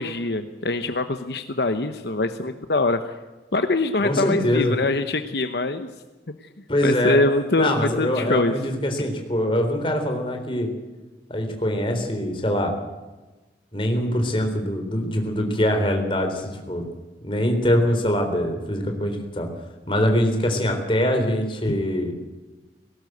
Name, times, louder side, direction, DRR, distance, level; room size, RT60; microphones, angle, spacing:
voice 1, 0.0-3.2 3.5-5.9 6.8-8.5 21.7-21.8, left 2 dB, 70° left, 8 dB, 1.0 m, -23 dB
voice 2, 4.0-4.7 6.7-7.2 7.6-10.7 11.3-12.7 13.7-16.9 17.2-19.5 19.9-22.1, equal, 30° left, 4 dB, 3.8 m, -23 dB
19.0 x 17.5 x 8.0 m, 1.2 s
head